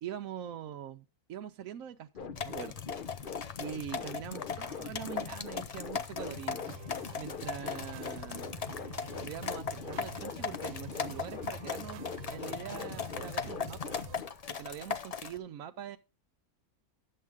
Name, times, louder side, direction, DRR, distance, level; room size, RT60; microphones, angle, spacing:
voice 1, 0.0-2.8 3.6-6.6 7.2-8.5 9.2-13.9 14.5-16.0, right 10 dB, 70° right, 1.0 m, -43 dB
sound 1, 2.1-14.3, left 7 dB, 50° left, 0.7 m, -43 dB
sound 2, 2.4-15.4, left 6 dB, 80° left, 0.3 m, -39 dB
sound 3, 6.2-14.2, right 11 dB, 90° right, 1.2 m, -49 dB
11.0 x 7.7 x 3.5 m
omnidirectional pair, 1.6 m